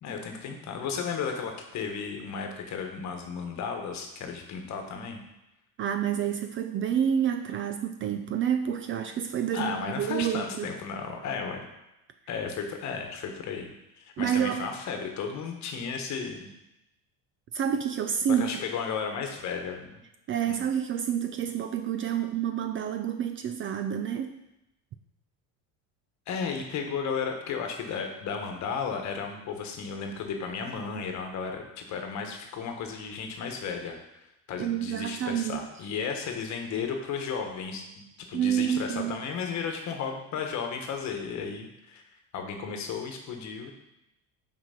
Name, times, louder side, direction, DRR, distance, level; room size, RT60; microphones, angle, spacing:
voice 1, 0.0-5.2 9.5-11.7 12.3-16.5 18.4-20.0 20.5-20.6 26.3-34.0 34.5-42.0 42.3-43.7, left 6 dB, 50° left, 4 dB, 1.3 m, -34 dB
voice 2, 5.8-10.7 14.2-14.6 17.5-18.5 20.3-24.3 34.6-35.6 38.3-39.2, right 9 dB, 35° right, 7 dB, 0.4 m, -28 dB
5.9 x 4.8 x 5.7 m, 0.89 s
cardioid pair, 140°, 37 cm